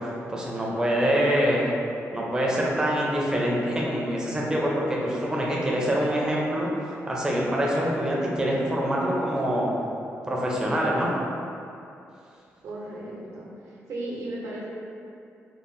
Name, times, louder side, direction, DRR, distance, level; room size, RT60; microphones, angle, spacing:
voice 1, 0.0-1.7 2.1-9.7 10.2-11.1, equal, 15° right, -4 dB, 0.5 m, -25 dB
voice 2, 12.6-14.7, right 1 dB, 70° right, -5 dB, 0.8 m, -36 dB
3.7 x 2.0 x 3.9 m, 2.6 s
wide cardioid pair, 170°, 5 cm